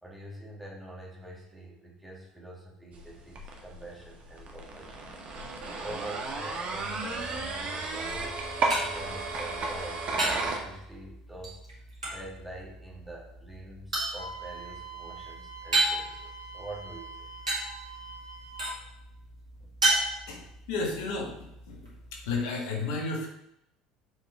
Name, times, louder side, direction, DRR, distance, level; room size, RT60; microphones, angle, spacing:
voice 1, 0.0-17.3 19.6-19.7, right 2 dB, ahead, -4 dB, 2.2 m, -45 dB
sound 1, 2.9-10.6, right 3 dB, 35° right, 1.4 m, -34 dB
sound 2, 8.1-22.4, right 2 dB, 80° right, 1.8 m, -35 dB
Wind instrument woodwind instrument, 14.1-18.8, right 3 dB, 80° left, 1.3 m, -44 dB
voice 2, 20.7-21.8 22.1-23.3, left 3 dB, 60° left, 0 dB, 1.6 m, -32 dB
6.8 x 5.3 x 3.4 m, 0.82 s
figure-of-eight pair, 65°, 3 cm